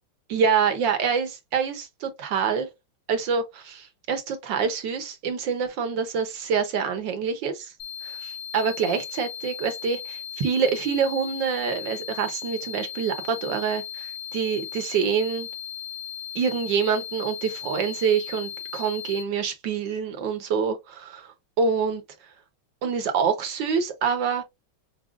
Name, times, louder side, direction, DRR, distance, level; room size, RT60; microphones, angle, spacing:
voice 1, 0.3-2.7 3.1-7.7 8.0-15.5 16.3-22.0 22.8-24.4, right 6 dB, 65° right, 1.3 m, -26 dB
sound 1, 7.8-19.2, left 9 dB, 50° left, 1.2 m, -37 dB
6.0 x 2.2 x 2.4 m
omnidirectional pair, 2.4 m